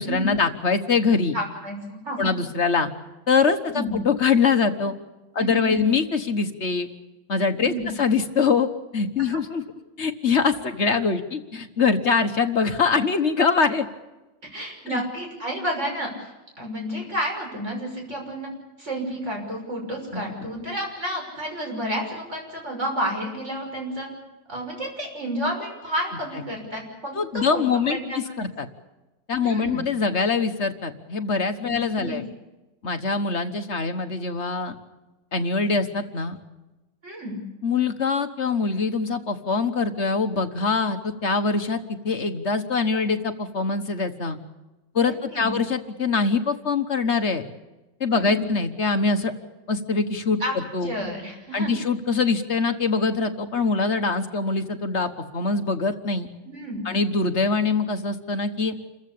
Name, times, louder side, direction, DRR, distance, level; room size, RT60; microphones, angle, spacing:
voice 1, 0.0-1.3 2.2-2.9 3.3-4.9 5.3-6.9 7.3-9.6 10.0-13.9 14.9-15.0 20.1-20.2 27.1-28.7 29.3-32.2 32.8-34.7 35.3-36.4 37.6-41.8 42.0-44.4 44.9-47.5 48.0-49.3 49.7-50.9 51.5-56.3 56.8-58.7, left 4 dB, 40° left, 8 dB, 1.4 m, -23 dB
voice 2, 1.3-2.3 3.7-4.0 5.4-5.8 7.6-7.8 9.3-9.4 14.5-16.3 16.6-18.5 18.8-24.1 24.5-27.1 27.5-28.2 29.3-29.8 31.7-32.2 37.0-37.4 45.0-45.6 48.1-48.5 50.4-50.5 50.8-51.7 56.4-56.9, equal, 40° right, 1 dB, 6.4 m, -31 dB
28.0 x 14.5 x 8.5 m, 1.1 s
omnidirectional pair, 2.0 m